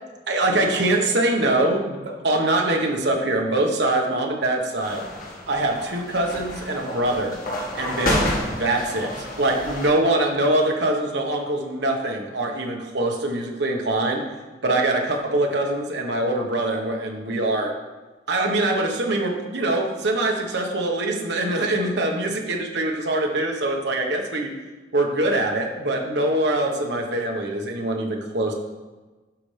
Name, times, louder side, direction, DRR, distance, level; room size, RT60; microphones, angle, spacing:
voice 1, 0.3-5.0 5.5-7.4 7.8-14.2 14.6-17.7 18.3-24.5 24.9-28.5, right 2 dB, 65° right, 1 dB, 1.3 m, -23 dB
sound 1, 4.8-9.9, left 1 dB, 50° left, 1.7 m, -29 dB
12.0 x 6.0 x 3.4 m, 1.2 s
head